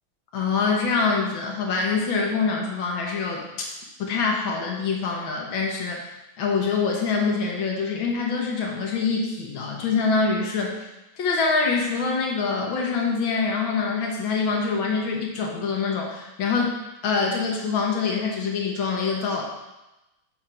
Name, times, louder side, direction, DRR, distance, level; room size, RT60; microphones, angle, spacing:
voice 1, 0.3-3.7 4.0-6.1 6.4-10.8 11.2-16.8 17.0-19.4, left 4 dB, 65° left, 0 dB, 1.9 m, -25 dB
6.5 x 4.3 x 5.1 m, 0.99 s
omnidirectional pair, 2.4 m